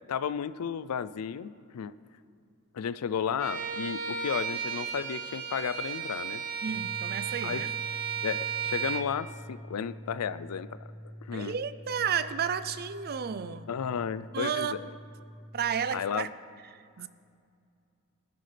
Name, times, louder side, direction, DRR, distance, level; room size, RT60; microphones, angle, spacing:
voice 1, 0.1-1.9 2.7-6.4 7.4-7.7 8.2-10.8 11.2-11.6 13.7-14.9 15.9-16.3, left 7 dB, 80° left, 15 dB, 0.4 m, -33 dB
Bowed string instrument, 3.4-9.1, right 7 dB, 75° right, 1.0 m, -34 dB
sound 1, 6.6-16.0, equal, 35° left, 3.1 m, -46 dB
voice 2, 6.6-7.7 11.3-13.7 14.3-14.7 15.5-16.3 16.7-17.1, right 7 dB, 45° right, 13 dB, 0.4 m, -32 dB
21.0 x 10.5 x 3.3 m, 2.4 s
head